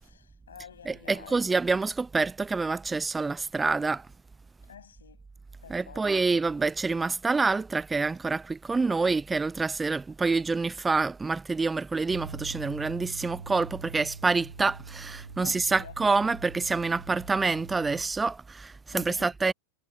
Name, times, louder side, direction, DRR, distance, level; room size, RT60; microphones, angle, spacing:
voice 1, 0.0-1.5 4.6-5.3 5.6-6.4 15.4-15.9 18.9-19.3, left 7 dB, 70° left, 7.6 m, -48 dB
voice 2, 0.9-4.0 5.7-19.5, right 4 dB, 10° right, 0.9 m, -27 dB
sound 1, 12.1-18.1, right 4 dB, 75° right, 7.7 m, -43 dB
figure-of-eight pair, 90°, 0 cm